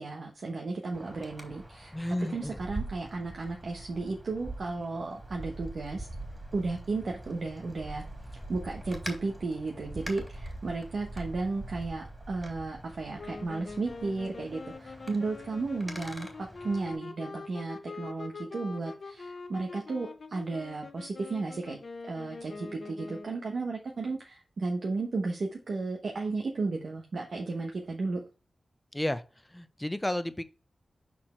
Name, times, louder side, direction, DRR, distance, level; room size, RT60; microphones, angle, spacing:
voice 1, 0.0-1.9 2.3-6.1 6.5-8.0 8.5-21.8 22.0-28.2, right 3 dB, 70° right, 1.1 m, -34 dB
Wind, 0.9-17.0, right 1 dB, 15° right, 2.9 m, -43 dB
voice 2, 1.9-2.6 28.9-29.2 29.5-30.4, left 1 dB, 15° left, 0.6 m, -32 dB
sound 1, 13.2-23.5, left 4 dB, 60° left, 1.0 m, -44 dB
6.0 x 4.5 x 4.3 m
wide cardioid pair, 70°, 0 cm